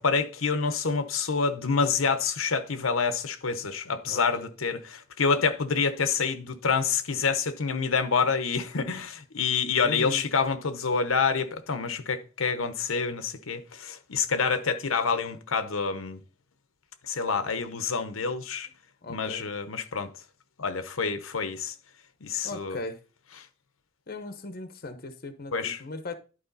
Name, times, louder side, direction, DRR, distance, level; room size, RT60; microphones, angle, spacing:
voice 1, 0.0-16.2 17.1-18.7 19.1-20.1 20.6-21.7 22.2-22.8 25.5-25.8, left 5 dB, 80° left, 0.9 m, -27 dB
voice 2, 4.1-4.5 9.8-10.2 19.0-19.5 22.4-23.0 24.1-26.1, left 2 dB, 50° left, 0.9 m, -38 dB
11.5 x 4.7 x 4.0 m
head